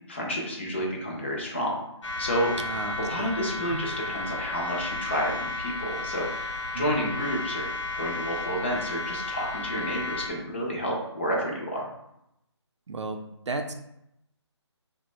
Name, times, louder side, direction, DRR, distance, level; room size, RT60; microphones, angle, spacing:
voice 1, 0.1-1.8 2.2-2.5 3.0-7.7 8.0-11.9, equal, 25° left, -2 dB, 0.4 m, -30 dB
sound 1, 2.0-10.3, left 2 dB, 90° left, 0.6 m, -33 dB
voice 2, 2.6-3.3 3.7-3.8 6.7-7.0 12.9-13.7, right 3 dB, 75° right, 5 dB, 0.4 m, -34 dB
2.9 x 2.1 x 3.0 m, 0.81 s
figure-of-eight pair, 160°, 15 cm